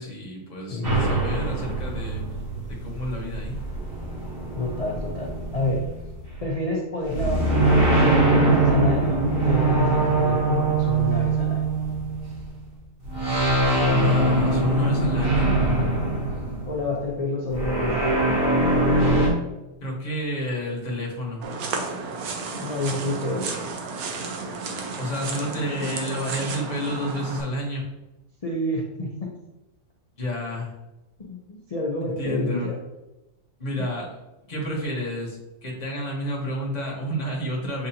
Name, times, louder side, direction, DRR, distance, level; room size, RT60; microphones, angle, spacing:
voice 1, 0.0-2.2 2.8-3.6 14.0-15.6 19.8-21.5 25.0-27.8 30.2-30.7 32.2-32.7 33.6-34.1 34.5-37.9, equal, 30° left, -2 dB, 1.0 m, -30 dB
voice 2, 0.7-1.2 4.5-5.8 6.4-11.6 16.7-18.3 22.5-23.6 28.4-29.3 31.3-32.8, left 2 dB, 75° left, -3 dB, 0.3 m, -28 dB
sound 1, 0.8-6.5 7.1-12.6 13.0-16.9 17.5-19.3, right 2 dB, 55° right, 2.1 m, -22 dB
sound 2, 21.4-27.4, right 4 dB, 70° right, 1.1 m, -32 dB
7.3 x 2.6 x 2.8 m, 0.99 s
omnidirectional pair, 1.7 m